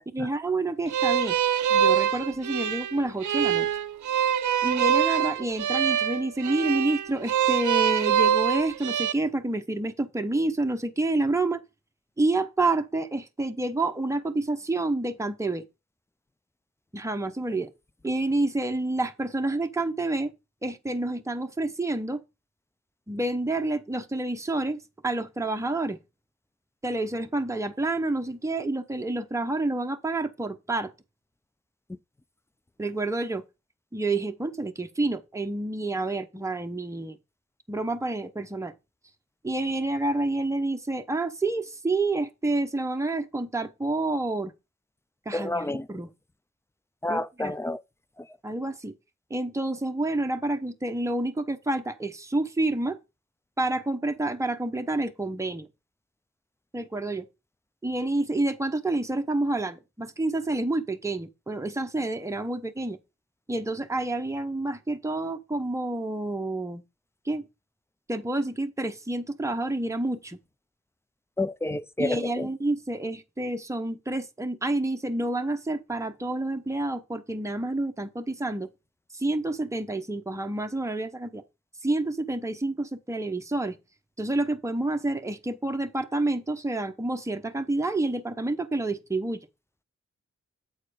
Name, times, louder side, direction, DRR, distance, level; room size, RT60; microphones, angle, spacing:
voice 1, 0.1-1.4 1.7-3.7 4.6-11.6 12.2-15.6 16.9-17.7 18.0-20.3 20.6-22.2 23.1-26.0 26.8-30.9 32.8-33.4 33.9-37.2 37.7-38.7 39.4-44.5 45.3-46.1 47.1-47.5 48.4-48.9 49.3-53.0 53.6-55.7 56.7-57.3 57.8-63.0 63.5-66.8 67.2-67.4 68.1-70.4 72.0-78.7 79.1-81.4 81.8-83.8 84.2-89.5, right 2 dB, 10° right, 0.8 m, -28 dB
sound 1, 0.9-9.1, right 9 dB, 85° right, 0.5 m, -24 dB
voice 2, 45.3-45.9 47.0-47.8 71.4-72.5, left 2 dB, 10° left, 0.4 m, -29 dB
7.8 x 4.3 x 5.0 m
cardioid pair, 60°, 29 cm